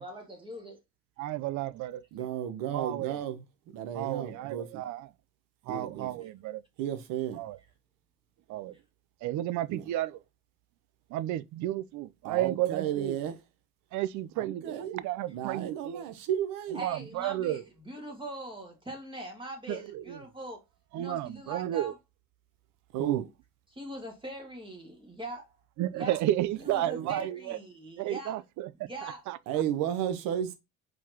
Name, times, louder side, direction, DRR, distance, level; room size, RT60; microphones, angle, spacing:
voice 1, 0.0-0.8 16.7-20.6 20.9-21.9 23.7-25.5 25.9-26.2 26.6-28.3 28.8-29.2, right 1 dB, 15° right, 1.8 m, -42 dB
voice 2, 1.2-2.0 2.7-3.2 3.9-5.1 5.7-6.6 7.4-7.6 8.5-8.8 9.2-10.2 11.1-13.2 13.9-16.0 16.8-17.6 19.7-20.2 20.9-21.9 23.0-23.2 25.8-27.6 28.0-28.9 29.3-29.4, right 14 dB, 60° right, 0.5 m, -32 dB
voice 3, 2.1-3.4 3.7-4.8 5.7-6.1 6.8-7.4 9.7-9.8 12.2-13.4 14.4-14.9 15.3-16.8 22.9-23.3 27.0-27.1 29.5-30.6, right 10 dB, 80° right, 1.0 m, -33 dB
4.8 x 3.9 x 2.8 m
cardioid pair, 125°, 33 cm